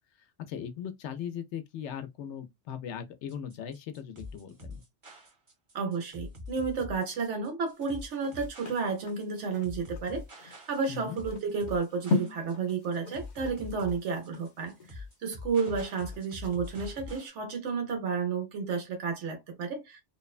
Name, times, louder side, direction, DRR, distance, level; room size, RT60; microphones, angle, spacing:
voice 1, 0.5-4.8 10.9-11.2, left 8 dB, 85° left, 0.9 m, -39 dB
sound 1, 3.3-17.3, left 3 dB, 30° right, 0.7 m, -44 dB
voice 2, 5.7-20.0, right 5 dB, 85° right, 1.2 m, -32 dB
sound 2, 7.7-16.3 16.7-16.8, left 4 dB, 50° left, 0.6 m, -38 dB
2.9 x 2.1 x 2.3 m
omnidirectional pair, 1.2 m